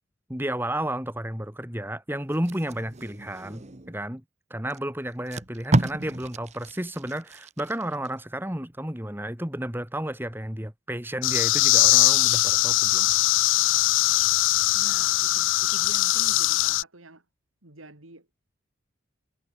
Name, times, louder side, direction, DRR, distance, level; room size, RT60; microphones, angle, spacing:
voice 1, 0.3-4.2 4.5-13.1, right 1 dB, 10° right, 3.1 m, -32 dB
Packing tape duct tape, 2.3-4.0 4.7-4.8 5.1-8.1 8.5-8.7, right 2 dB, 35° right, 1.0 m, -31 dB
sound 1, 11.2-16.8, left 18 dB, 70° left, 0.3 m, -21 dB
voice 2, 14.7-17.2 17.6-18.3, right 2 dB, 85° right, 3.6 m, -46 dB
head